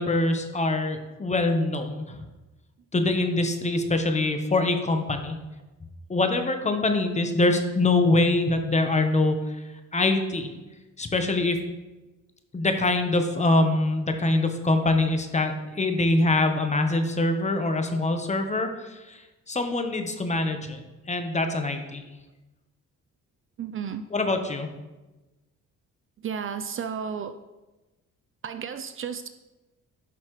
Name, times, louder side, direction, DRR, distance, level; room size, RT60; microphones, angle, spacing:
voice 1, 0.0-2.2 2.9-5.4 6.1-9.6 9.9-10.5 11.0-11.6 12.5-19.2 19.5-20.8 21.1-22.0 24.1-24.7, left 2 dB, 25° left, 6 dB, 1.0 m, -24 dB
voice 2, 23.6-24.1 26.2-27.4 28.4-29.3, right 7 dB, 45° right, 10 dB, 0.5 m, -33 dB
11.0 x 5.6 x 3.2 m, 1.1 s
cardioid pair, 90°, 30 cm